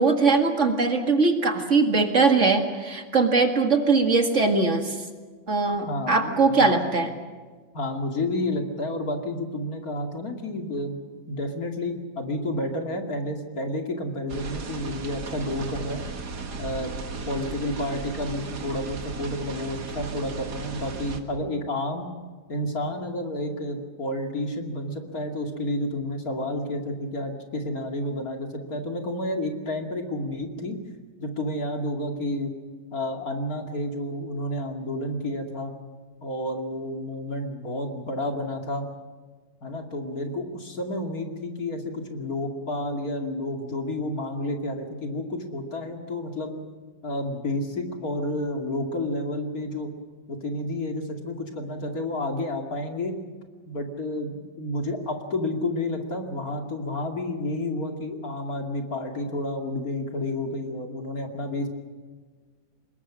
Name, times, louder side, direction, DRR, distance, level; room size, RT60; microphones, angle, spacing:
voice 1, 0.0-5.0 5.5-7.1, right 4 dB, 45° right, 5 dB, 2.2 m, -21 dB
voice 2, 5.9-6.8 7.7-11.0 11.3-16.0 16.6-17.0 17.3-22.1 22.5-30.8 31.2-32.5 32.9-35.7 36.2-38.9 39.6-46.5 47.0-49.9 50.3-53.1 53.7-61.7, left 1 dB, 55° left, 3 dB, 2.9 m, -30 dB
sound 1, 14.3-21.2, right 4 dB, 65° right, 2.3 m, -35 dB
25.0 x 21.5 x 6.2 m, 1.5 s
omnidirectional pair, 1.9 m